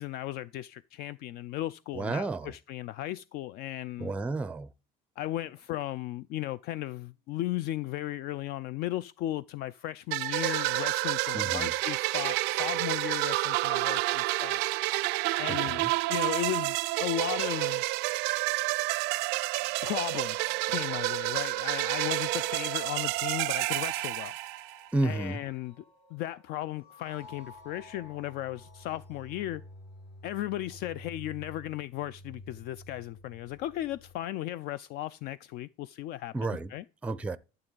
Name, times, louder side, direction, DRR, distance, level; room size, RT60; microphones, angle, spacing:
voice 1, 0.0-4.1 5.2-14.6 15.4-15.8 16.1-17.8 19.8-24.3 25.0-25.8 26.1-29.6 30.2-36.8, left 14 dB, 65° left, 0.4 m, -36 dB
voice 2, 1.9-2.5 4.0-4.7 11.3-11.7 15.5-15.9 24.9-25.4 36.3-36.7 37.0-37.4, right 2 dB, 5° right, 0.4 m, -31 dB
sound 1, 10.1-24.9, right 22 dB, 80° right, 0.4 m, -29 dB
sound 2, 19.6-34.2, left 1 dB, 90° left, 3.4 m, -51 dB
12.0 x 7.6 x 3.8 m
cardioid pair, 130°, 18 cm